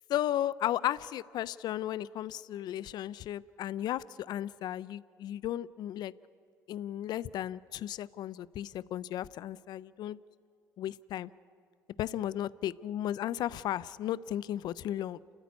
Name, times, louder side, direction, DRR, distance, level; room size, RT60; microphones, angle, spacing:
voice 1, 0.1-6.1 6.7-10.2 10.8-11.3 12.0-15.2, left 12 dB, 65° left, 19 dB, 0.5 m, -35 dB
29.0 x 14.0 x 9.6 m, 2.3 s
supercardioid pair, 75°, 8 cm